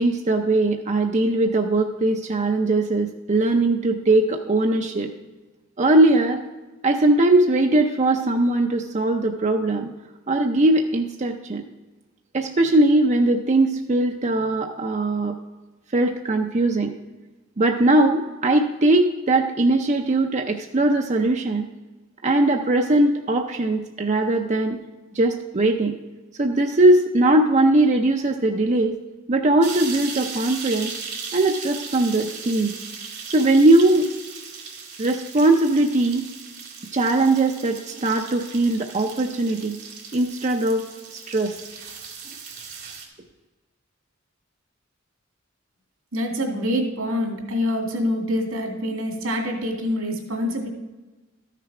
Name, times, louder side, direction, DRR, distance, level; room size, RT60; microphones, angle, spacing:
voice 1, 0.0-5.1 5.8-6.4 6.8-9.9 10.3-11.6 12.3-15.3 15.9-16.9 17.6-21.7 22.2-24.8 25.1-25.9 26.4-29.0 29.3-30.9 31.3-32.7 33.3-34.1 35.0-36.3 36.9-39.7 40.1-40.8 41.3-41.6, right 2 dB, 35° right, 3 dB, 0.6 m, -20 dB
sound 1, 29.6-43.1, right 5 dB, 55° right, 2.2 m, -37 dB
voice 2, 46.1-50.7, left 1 dB, 85° right, 1 dB, 2.4 m, -25 dB
13.0 x 6.7 x 4.8 m, 1.2 s
head